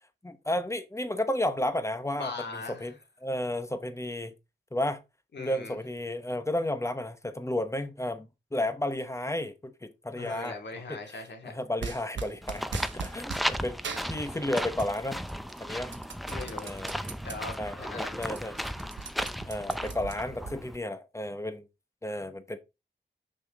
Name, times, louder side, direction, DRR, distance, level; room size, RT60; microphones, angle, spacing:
voice 1, 0.2-2.9 3.2-4.3 4.7-5.0 5.4-10.6 10.9-15.2 15.6-16.0 16.6-16.9 17.6-18.6 19.4-21.7 22.0-22.6, left 1 dB, 15° left, 1.0 m, -32 dB
voice 2, 2.1-2.9 5.3-5.8 10.2-11.6 16.2-16.7 17.2-18.1, left 3 dB, 70° left, 2.3 m, -40 dB
sound 1, 11.8-13.5 13.8-15.0 15.3-17.4 17.8-17.9 18.1-20.5, right 5 dB, 90° right, 1.1 m, -40 dB
sound 2, 12.4-20.8, equal, ahead, 0.6 m, -35 dB
6.4 x 6.1 x 3.6 m
wide cardioid pair, 85°, 19 cm